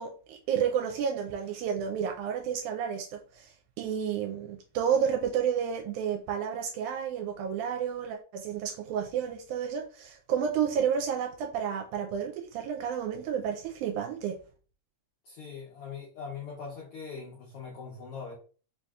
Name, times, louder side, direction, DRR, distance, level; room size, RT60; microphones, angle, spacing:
voice 1, 0.0-14.4, right 8 dB, 85° right, 2 dB, 2.0 m, -31 dB
voice 2, 15.2-18.3, left 5 dB, 75° left, -4 dB, 1.3 m, -41 dB
4.7 x 2.7 x 2.3 m, 0.39 s
omnidirectional pair, 3.5 m